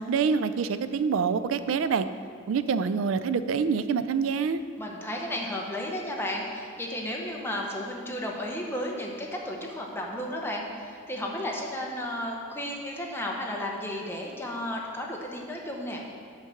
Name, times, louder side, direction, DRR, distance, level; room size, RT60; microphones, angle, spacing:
voice 1, 0.0-2.1 2.5-4.6, right 5 dB, 75° right, 12 dB, 0.3 m, -26 dB
voice 2, 4.8-16.0, left 1 dB, 10° left, -1 dB, 0.9 m, -33 dB
5.9 x 5.7 x 5.7 m, 2.2 s
head